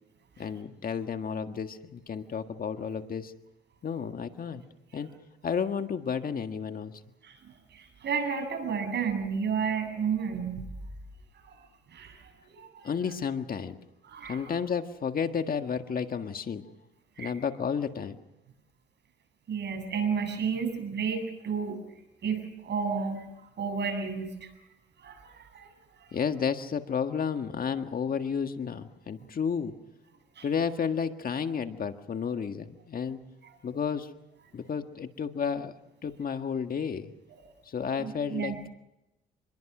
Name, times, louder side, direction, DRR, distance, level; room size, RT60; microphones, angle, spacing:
voice 1, 0.4-3.3 3.8-4.6 4.9-5.1 5.4-6.9 12.8-13.8 14.3-16.6 17.2-18.2 26.1-29.7 30.4-33.2 33.6-34.1 34.5-35.7 36.0-37.1 37.7-38.7, left 6 dB, 45° left, 7 dB, 1.7 m, -32 dB
voice 2, 7.7-10.6 11.4-11.5 11.9-12.9 14.0-14.5 17.2-17.3 19.5-21.8 22.2-23.2 23.6-24.5 25.0-25.7 30.4-30.5 37.3-37.4 38.0-38.6, right 6 dB, 60° right, 5 dB, 7.9 m, -32 dB
27.0 x 22.0 x 6.1 m, 0.93 s
cardioid pair, 90°, 20 cm